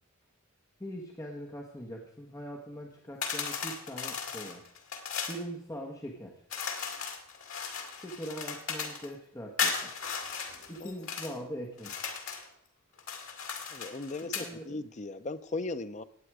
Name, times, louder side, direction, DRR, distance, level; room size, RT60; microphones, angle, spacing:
voice 1, 0.8-4.6 5.3-6.4 7.9-9.9 10.7-12.1 14.2-14.7, equal, 15° left, 0 dB, 1.4 m, -42 dB
sound 1, 3.2-5.4 6.5-9.1 9.6-11.3 11.8-12.5 13.0-14.5, left 6 dB, 75° left, 2.2 m, -36 dB
voice 2, 13.7-14.3 14.7-16.0, left 2 dB, 35° left, 12 dB, 0.6 m, -37 dB
17.0 x 9.0 x 4.9 m, 0.71 s
head